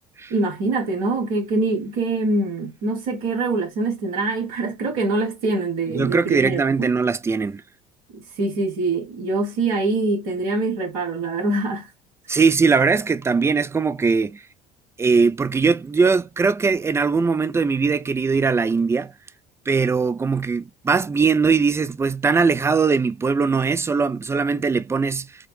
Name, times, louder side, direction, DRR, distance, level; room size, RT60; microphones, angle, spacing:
voice 1, 0.3-6.9 8.1-11.9, right 2 dB, 75° right, 1.3 m, -24 dB
voice 2, 5.9-7.6 12.3-14.4 15.0-19.1 19.7-25.3, right 5 dB, 15° right, 0.3 m, -20 dB
4.0 x 2.0 x 3.1 m
hypercardioid pair, 65°, 19 cm